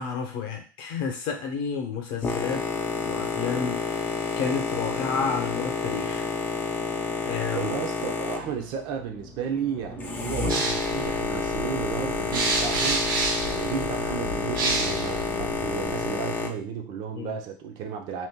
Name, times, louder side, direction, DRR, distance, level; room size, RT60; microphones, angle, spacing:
voice 1, 0.0-2.6 3.0-3.8 4.4-6.2 7.2-7.8 17.1-17.4, left 6 dB, 50° left, 3 dB, 0.8 m, -30 dB
Boat Water vehicle, 2.2-16.5, left 4 dB, 15° left, 0.4 m, -30 dB
voice 2, 7.5-18.3, right 7 dB, 45° right, 4 dB, 0.5 m, -33 dB
sound 1, 10.5-16.1, right 3 dB, 90° right, 0.8 m, -30 dB
2.6 x 2.2 x 3.6 m, 0.37 s
supercardioid pair, 130°, 11 cm